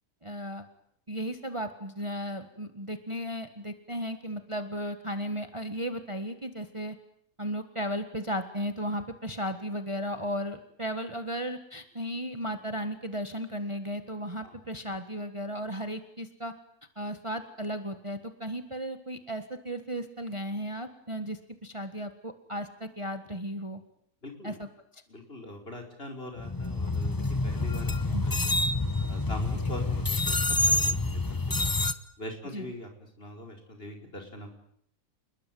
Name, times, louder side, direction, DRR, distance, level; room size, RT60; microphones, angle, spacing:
voice 1, 0.2-0.7 1.1-7.0 7.4-16.5 16.9-23.8 24.4-24.7 28.1-28.2 32.5-32.7, equal, 20° right, 8 dB, 1.7 m, -35 dB
voice 2, 24.2-24.6 25.1-28.5 29.1-31.7 32.2-32.9 33.2-34.6, left 1 dB, 40° left, 3 dB, 5.4 m, -42 dB
sound 1, 26.4-31.9, left 2 dB, 15° left, 1.0 m, -27 dB
28.5 x 21.0 x 9.4 m, 0.68 s
omnidirectional pair, 1.6 m